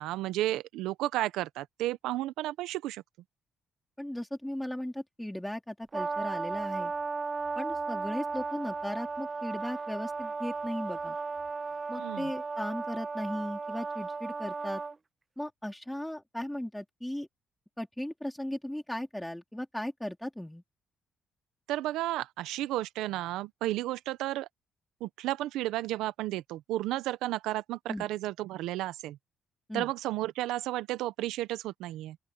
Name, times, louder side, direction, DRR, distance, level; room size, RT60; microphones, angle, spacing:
voice 1, 0.0-3.0 12.0-12.3 21.7-24.5 25.0-29.2 29.7-32.2, right 15 dB, 85° right, 0.9 m, -33 dB
voice 2, 4.0-6.9 7.6-11.2 11.9-14.8 15.4-17.3 17.8-20.6 27.9-28.1 29.7-29.9, left 1 dB, 5° left, 4.1 m, -37 dB
Brass instrument, 5.9-15.0, right 4 dB, 30° right, 1.1 m, -35 dB
open air
supercardioid pair, 65°, 0 cm